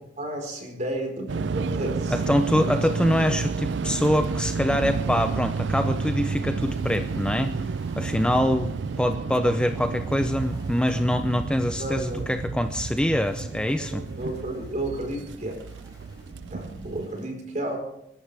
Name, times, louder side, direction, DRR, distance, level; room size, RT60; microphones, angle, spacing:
voice 1, 0.2-2.2 2.5-2.7 11.8-12.3 13.9-15.6 16.5-17.8, right 1 dB, 45° right, 2 dB, 4.4 m, -32 dB
sound 1, 1.3-17.1, right 4 dB, 85° right, 0.5 m, -30 dB
voice 2, 2.1-7.5 8.0-8.7 9.0-14.0, equal, 5° left, 7 dB, 0.6 m, -24 dB
sound 2, 6.6-17.3, equal, 20° right, 7.1 m, -49 dB
27.5 x 11.5 x 3.4 m, 0.79 s
head